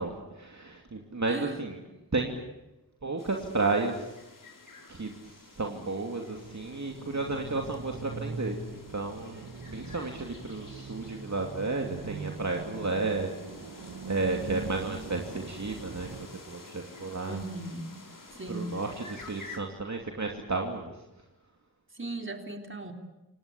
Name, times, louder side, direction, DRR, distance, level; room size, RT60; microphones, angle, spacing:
voice 1, 0.0-1.8 2.1-2.3 3.0-4.1 4.9-17.4 18.5-21.0, right 3 dB, 50° right, 2 dB, 2.7 m, -33 dB
voice 2, 1.3-1.6 17.3-17.9 18.4-18.7 21.9-22.9, right 2 dB, 35° right, 5 dB, 3.7 m, -37 dB
sound 1, 3.2-19.6, left 3 dB, 60° left, 4.7 m, -51 dB
sound 2, 6.3-16.2, right 3 dB, 85° right, 2.6 m, -42 dB
29.0 x 18.5 x 8.5 m, 0.99 s
cardioid pair, 45°, 37 cm